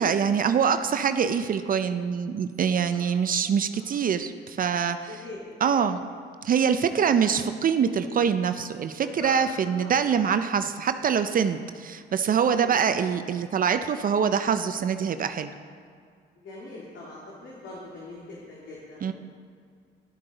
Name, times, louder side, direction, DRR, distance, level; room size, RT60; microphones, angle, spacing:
voice 1, 0.0-5.1 5.6-6.0 6.4-15.5 19.0-19.1, right 7 dB, 45° right, 10 dB, 0.4 m, -24 dB
voice 2, 2.8-3.2 3.7-3.9 5.2-6.1 6.9-7.3 9.0-9.3 9.8-9.9 12.6-12.8 16.4-19.1, left 2 dB, 70° left, -5 dB, 2.0 m, -42 dB
11.0 x 7.5 x 3.9 m, 2.2 s
cardioid pair, 90°, 20 cm